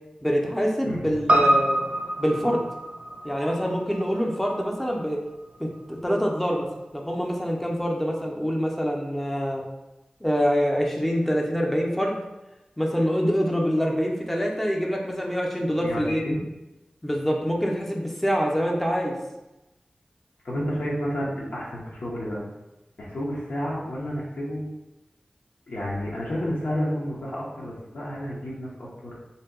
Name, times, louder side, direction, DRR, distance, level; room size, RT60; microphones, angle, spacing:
voice 1, 0.2-1.8 2.2-2.6 3.2-5.2 5.6-6.7 6.9-9.6 10.2-12.2 12.8-16.2 17.0-19.2, equal, 5° left, -1 dB, 0.5 m, -25 dB
voice 2, 0.8-1.2 15.7-16.4 20.4-22.4 23.0-24.6 25.7-29.2, equal, 85° left, -6 dB, 0.7 m, -31 dB
Piano, 1.3-5.8 6.1-6.2, right 1 dB, 55° right, 0.5 m, -26 dB
2.7 x 2.2 x 3.5 m, 0.98 s
wide cardioid pair, 60°, 3 cm